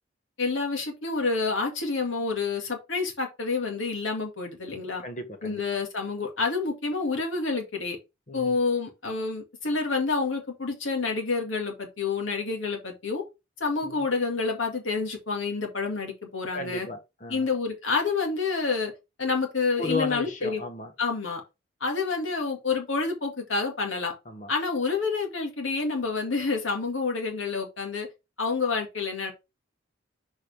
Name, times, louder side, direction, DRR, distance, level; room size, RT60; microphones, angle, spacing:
voice 1, 0.4-5.0 5.4-8.0 8.3-13.2 13.6-16.9 17.3-18.9 19.2-20.6 21.0-21.4 21.8-24.1 24.5-28.1 28.4-29.3, left 4 dB, 85° left, 2.2 m, -28 dB
voice 2, 5.0-5.6 8.3-8.6 13.8-14.1 16.5-17.5 19.8-20.9 24.2-24.5, left 3 dB, 40° left, 1.3 m, -34 dB
6.5 x 4.8 x 3.4 m
head